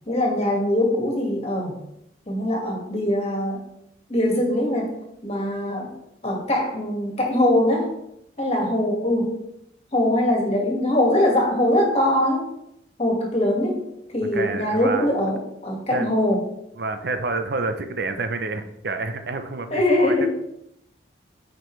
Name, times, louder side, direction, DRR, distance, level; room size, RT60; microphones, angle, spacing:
voice 1, 0.1-1.8 2.3-3.6 4.1-4.9 5.2-5.9 6.2-7.9 8.4-9.4 9.9-12.5 13.0-13.8 14.1-16.4 19.7-20.3, left 1 dB, 35° left, 0 dB, 1.8 m, -22 dB
voice 2, 14.3-15.1 15.9-16.1 16.8-20.1, right 3 dB, 60° right, 8 dB, 0.6 m, -28 dB
9.3 x 5.1 x 3.2 m, 0.79 s
head